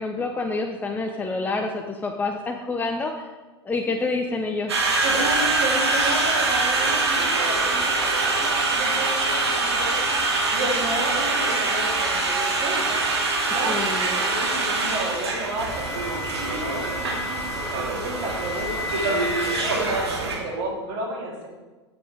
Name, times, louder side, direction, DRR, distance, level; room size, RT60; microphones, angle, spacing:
voice 1, 0.0-3.1 3.6-4.7 13.7-14.2, left 3 dB, 10° left, 3 dB, 0.8 m, -27 dB
Conversation, 4.7-20.4, right 3 dB, 70° right, 2.3 m, -24 dB
voice 2, 5.0-10.2 10.5-13.0 13.5-15.9 16.3-21.5, right 1 dB, 50° right, -2 dB, 3.5 m, -32 dB
14.5 x 7.1 x 3.6 m, 1.3 s
figure-of-eight pair, 90°, 14 cm